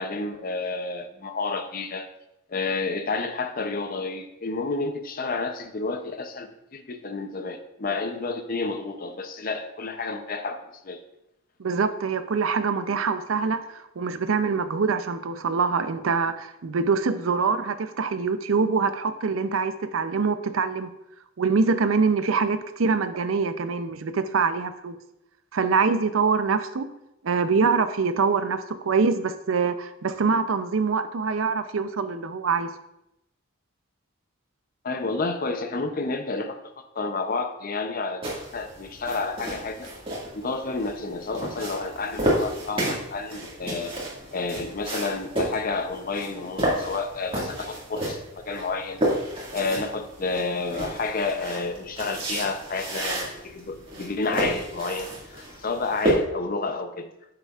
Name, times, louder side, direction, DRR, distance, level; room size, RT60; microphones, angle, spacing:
voice 1, 0.0-2.1 2.5-11.0 34.8-36.6 37.0-39.9 40.3-43.9 44.3-49.0 49.5-57.1, left 3 dB, 45° left, 7 dB, 0.6 m, -30 dB
voice 2, 11.6-20.9 21.4-25.0 25.5-26.9 27.2-32.7, right 5 dB, 80° right, 11 dB, 0.5 m, -24 dB
sound 1, 38.2-56.1, right 1 dB, 25° right, 1.9 m, -31 dB
8.9 x 6.8 x 2.4 m, 0.85 s
head